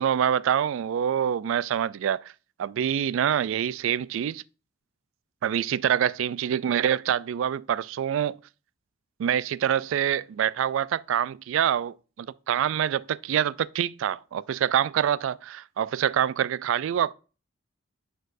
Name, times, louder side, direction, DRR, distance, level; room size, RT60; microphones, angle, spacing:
voice 1, 0.0-2.2 2.6-4.4 5.4-8.4 9.2-17.1, right 9 dB, 70° right, 0.3 m, -26 dB
10.5 x 4.5 x 2.6 m
head